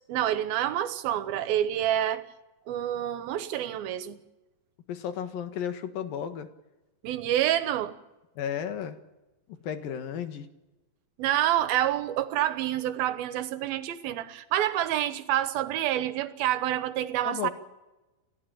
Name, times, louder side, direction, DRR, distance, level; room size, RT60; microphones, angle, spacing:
voice 1, 0.1-2.3 2.7-4.2 7.0-8.0 11.2-17.5, right 12 dB, 85° right, 3.0 m, -28 dB
voice 2, 4.9-6.5 8.4-9.0 9.6-10.5 17.2-17.5, left 8 dB, 75° left, 3.3 m, -33 dB
29.5 x 15.0 x 9.0 m
omnidirectional pair, 4.2 m